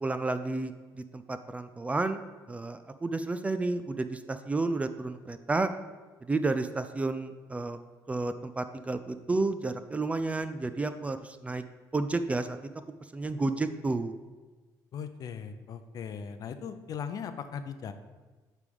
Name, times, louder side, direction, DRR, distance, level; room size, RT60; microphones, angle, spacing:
voice 1, 0.0-2.2 2.5-5.7 6.2-7.8 8.1-11.6 11.9-12.6 13.1-14.1, right 3 dB, 15° right, 10 dB, 0.3 m, -31 dB
voice 2, 14.9-17.9, left 7 dB, 55° left, 10 dB, 0.5 m, -38 dB
8.2 x 3.3 x 5.4 m, 1.3 s
cardioid pair, 120°, 8 cm